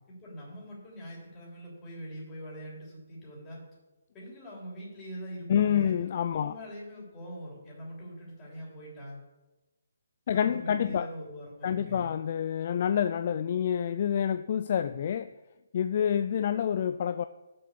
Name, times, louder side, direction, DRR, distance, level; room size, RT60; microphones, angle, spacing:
voice 1, 0.1-3.6 4.1-5.9 6.3-9.2 10.3-12.1, equal, 20° left, 3.4 m, -43 dB
voice 2, 5.5-6.5 10.3-11.1 11.6-15.3 15.7-17.2, left 9 dB, 45° left, 0.3 m, -27 dB
6.9 x 6.8 x 6.7 m
hypercardioid pair, 155°, 0 cm